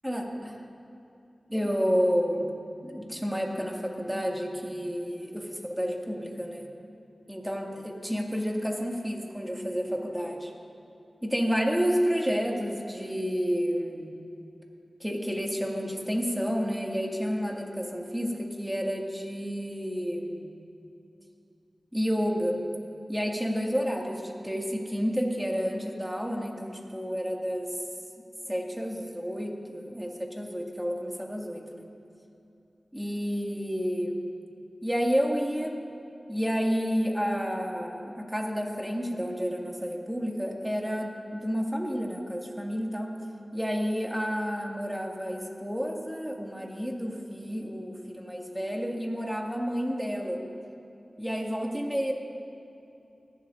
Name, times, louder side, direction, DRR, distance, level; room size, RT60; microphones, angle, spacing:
voice 1, 0.0-0.5 1.5-2.6 2.8-7.0 7.3-10.5 11.2-14.1 15.0-20.5 21.9-22.6 23.1-27.7 28.5-31.9 32.9-34.2 34.8-35.8 36.3-43.1 43.5-50.4 51.2-52.1, equal, 5° right, -1 dB, 2.0 m, -30 dB
19.5 x 11.5 x 2.5 m, 2.8 s
cardioid pair, 40°, 0 cm